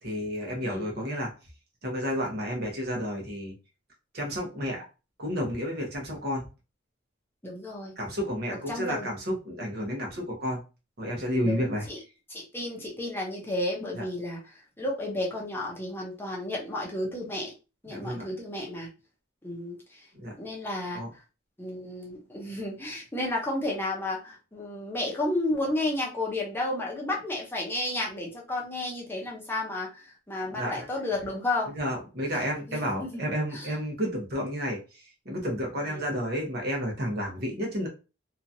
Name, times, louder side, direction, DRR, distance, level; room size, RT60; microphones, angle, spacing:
voice 1, 0.0-1.3 1.8-3.5 4.1-4.9 5.2-6.5 8.0-10.6 11.0-11.9 13.9-14.0 17.9-18.3 20.1-20.3 20.9-21.1 30.5-30.9 31.7-37.9, equal, 50° right, 0 dB, 1.0 m, -31 dB
voice 2, 7.4-8.0 8.5-9.1 11.4-12.0 12.3-17.5 17.8-18.9 19.4-20.1 20.4-21.0 21.6-31.8 32.7-33.2 33.5-33.7 35.8-36.0, left 1 dB, 10° left, -3 dB, 0.7 m, -32 dB
2.9 x 2.4 x 2.6 m, 0.31 s
head